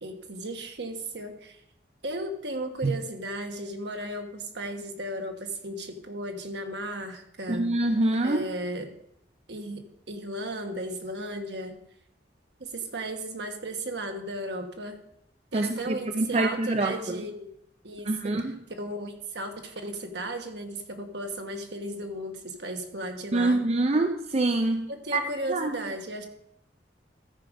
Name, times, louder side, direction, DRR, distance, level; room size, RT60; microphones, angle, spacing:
voice 1, 0.0-1.6 2.0-7.7 8.2-8.9 9.5-11.8 12.6-15.0 15.5-17.5 17.8-23.6 24.9-26.3, right 1 dB, 70° right, 5 dB, 1.4 m, -35 dB
voice 2, 7.5-8.4 15.5-17.2 18.1-18.6 23.3-25.2 25.5-25.8, right 2 dB, 35° right, 6 dB, 0.5 m, -26 dB
13.5 x 5.1 x 5.1 m, 0.75 s
head